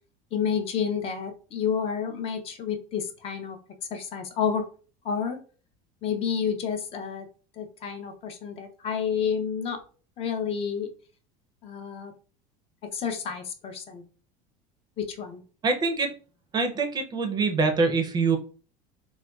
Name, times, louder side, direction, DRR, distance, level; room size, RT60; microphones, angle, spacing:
voice 1, 0.3-3.6 3.9-4.6 5.0-5.4 6.0-7.3 7.6-9.8 10.2-10.9 11.6-12.1 12.8-14.0 15.0-15.4, left 7 dB, 35° left, 6 dB, 0.4 m, -30 dB
voice 2, 15.6-16.1 16.5-18.4, right 4 dB, 25° right, 4 dB, 0.4 m, -24 dB
3.8 x 2.1 x 2.3 m, 0.38 s
cardioid pair, 145°, 18 cm